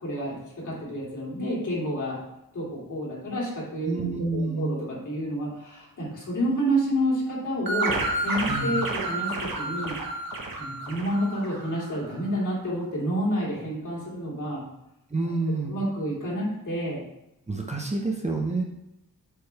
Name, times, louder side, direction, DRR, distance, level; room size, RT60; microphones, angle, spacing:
voice 1, 0.0-2.2 2.5-9.9 10.6-14.6 15.7-17.0, equal, 60° left, -5 dB, 2.7 m, -29 dB
voice 2, 3.9-4.8 8.5-8.8 15.1-15.7 17.5-18.6, right 3 dB, 20° right, 0 dB, 0.7 m, -28 dB
sound 1, 7.7-12.0, right 2 dB, 80° right, 1.4 m, -30 dB
7.9 x 5.3 x 3.4 m, 0.87 s
wide cardioid pair, 160°, 35 cm